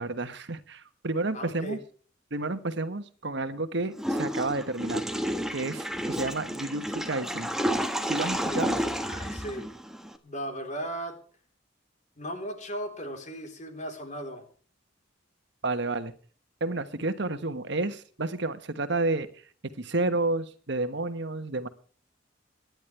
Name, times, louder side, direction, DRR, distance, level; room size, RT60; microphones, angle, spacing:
voice 1, 0.0-1.8 2.3-5.1 5.5-7.5 8.1-8.8 15.6-16.1 16.6-19.3 19.8-21.7, right 2 dB, 65° right, 10 dB, 1.3 m, -30 dB
voice 2, 1.3-1.8 8.5-9.8 10.2-11.2 12.2-14.5, equal, 40° left, 4 dB, 3.7 m, -37 dB
Water / Toilet flush, 4.0-10.2, equal, ahead, 1.4 m, -31 dB
24.5 x 10.5 x 3.3 m, 0.42 s
head